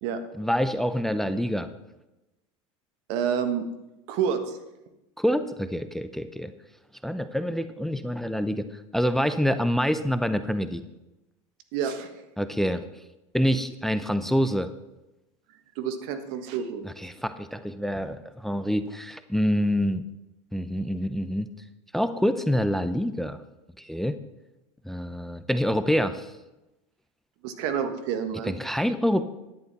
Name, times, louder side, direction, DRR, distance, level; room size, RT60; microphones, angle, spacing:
voice 1, 0.4-1.7 5.2-6.5 7.0-8.7 8.9-10.8 12.4-12.9 13.3-14.7 16.8-20.0 20.5-21.5 21.9-23.4 23.8-24.2 24.8-26.3 28.4-29.2, equal, ahead, 11 dB, 0.6 m, -26 dB
voice 2, 3.1-3.6 4.1-4.6 11.7-12.1 15.8-16.8 27.4-28.5, right 7 dB, 65° right, 8 dB, 1.4 m, -28 dB
11.0 x 9.4 x 4.1 m, 0.98 s
supercardioid pair, 110°, 16 cm